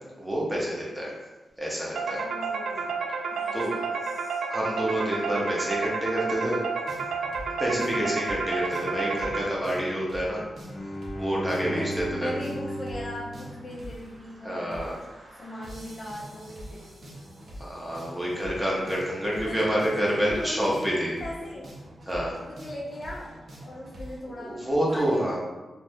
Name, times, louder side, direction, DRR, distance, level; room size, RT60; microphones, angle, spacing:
voice 1, 0.2-1.1 1.6-2.2 3.5-3.7 4.5-6.6 7.6-10.4 11.1-12.3 14.4-14.9 17.6-21.1 22.1-22.4 24.5-25.4, equal, 10° right, -4 dB, 0.7 m, -28 dB
sound 1, 1.9-9.8, right 4 dB, 90° right, 0.3 m, -31 dB
voice 2, 2.1-4.5 7.8-8.2 11.6-17.2 18.3-18.7 19.4-21.7 22.5-25.4, left 1 dB, 30° left, -4 dB, 0.5 m, -40 dB
sound 2, 6.9-24.2, equal, 55° right, 0.7 m, -44 dB
Bowed string instrument, 10.6-14.4, equal, 60° left, 0.8 m, -36 dB
2.7 x 2.4 x 3.3 m, 1.1 s
wide cardioid pair, 150°, 0 cm